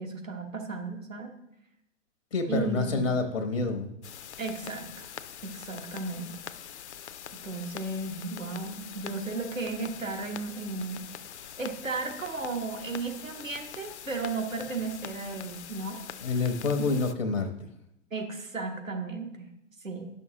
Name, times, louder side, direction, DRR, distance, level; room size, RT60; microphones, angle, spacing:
voice 1, 0.0-1.3 2.5-3.1 4.4-5.1 5.4-6.4 7.4-11.0 11.6-16.0 16.8-16.9 18.1-19.5 19.8-20.1, right 3 dB, 85° right, 3 dB, 1.2 m, -34 dB
voice 2, 2.3-3.9 16.2-17.7, left 3 dB, 80° left, 5 dB, 1.0 m, -28 dB
sound 1, 4.0-17.1, left 9 dB, 60° left, 0.5 m, -44 dB
10.5 x 6.3 x 2.9 m, 0.80 s
figure-of-eight pair, 105°, 38 cm